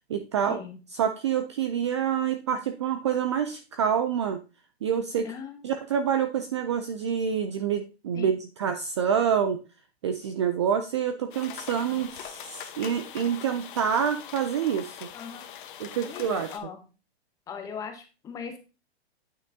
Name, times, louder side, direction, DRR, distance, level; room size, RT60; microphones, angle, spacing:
voice 1, 0.1-0.6 1.0-4.4 4.8-5.3 5.6-9.6 10.0-15.1 15.8-16.5, right 8 dB, 30° right, 8 dB, 0.4 m, -27 dB
voice 2, 5.2-5.7 8.1-8.3 11.9-12.0 15.1-15.5 16.0-16.8 17.5-18.6, left 6 dB, 10° left, 5 dB, 0.8 m, -39 dB
sound 1, 11.3-16.6, left 10 dB, 50° left, 1.0 m, -42 dB
9.1 x 5.9 x 2.7 m, 0.32 s
hypercardioid pair, 150°, 32 cm